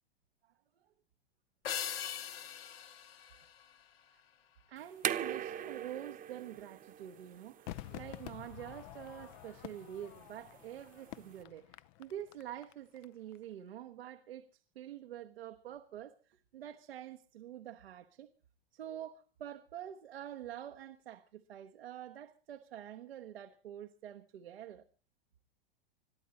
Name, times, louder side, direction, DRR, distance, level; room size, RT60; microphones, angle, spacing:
sound 1, 1.6-4.3, left 9 dB, 80° left, 1.9 m, -41 dB
voice 1, 4.7-18.3 18.7-24.8, right 11 dB, 85° right, 1.1 m, -47 dB
sound 2, 4.8-11.4, right 10 dB, 30° right, 1.0 m, -42 dB
Crowd / Fireworks, 7.7-13.1 13.3-13.4, left 15 dB, 50° left, 0.7 m, -49 dB
22.0 x 13.5 x 4.1 m
hypercardioid pair, 105°, 30 cm